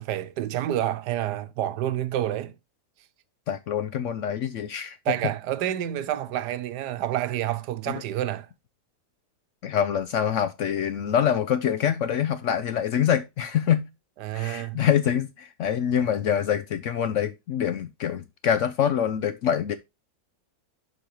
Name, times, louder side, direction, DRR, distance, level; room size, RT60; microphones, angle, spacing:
voice 1, 0.0-2.5 5.1-8.5 14.2-14.8, right 12 dB, 85° right, 1.3 m, -28 dB
voice 2, 3.5-5.0 9.6-13.9 14.3-19.8, left 9 dB, 70° left, 0.7 m, -25 dB
11.5 x 3.9 x 2.9 m
omnidirectional pair, 1.7 m